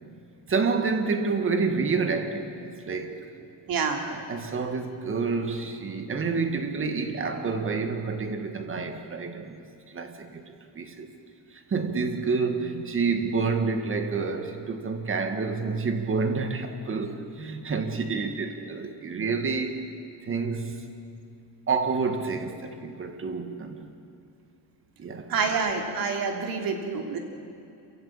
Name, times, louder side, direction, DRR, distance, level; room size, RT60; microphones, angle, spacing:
voice 1, 0.5-3.2 4.1-10.4 10.8-11.1 11.5-19.8 20.2-20.9 21.7-23.9 25.0-25.6, right 4 dB, 30° right, 6 dB, 1.9 m, -29 dB
voice 2, 3.7-4.0 25.3-27.2, right 5 dB, 60° right, 3 dB, 3.1 m, -27 dB
28.0 x 15.5 x 8.8 m, 2.6 s
cardioid pair, 160°, 41 cm